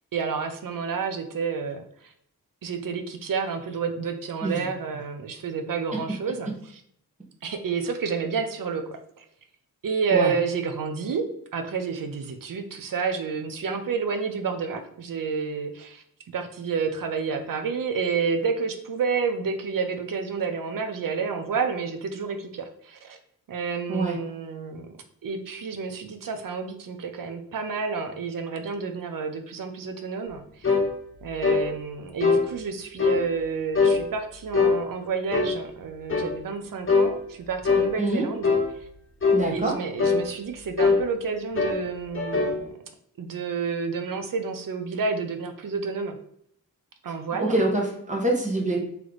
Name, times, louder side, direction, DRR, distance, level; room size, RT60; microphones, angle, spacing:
voice 1, 0.1-1.8 2.6-6.5 7.4-8.8 9.2-9.3 9.8-11.3 11.5-16.0 16.3-23.2 23.5-24.9 25.2-30.7 31.2-38.5 39.5-42.7 43.2-46.2 47.0-47.6, right 5 dB, 65° right, 7 dB, 0.6 m, -29 dB
sound 1, 30.6-30.9 31.4-31.7 32.2-32.4 33.0-33.2 33.7-34.0 34.5-34.8 35.3-35.6 36.1-36.3 36.9-37.1 37.6-37.9 38.4-38.7 39.2-39.5 40.0-40.2 40.8-41.0 41.6-41.8 42.1-42.6, left 4 dB, 35° left, 1.2 m, -21 dB
voice 2, 39.3-39.7 47.4-48.8, right 2 dB, 20° right, -1 dB, 1.2 m, -25 dB
3.2 x 3.1 x 3.9 m, 0.69 s
cardioid pair, 80°, 36 cm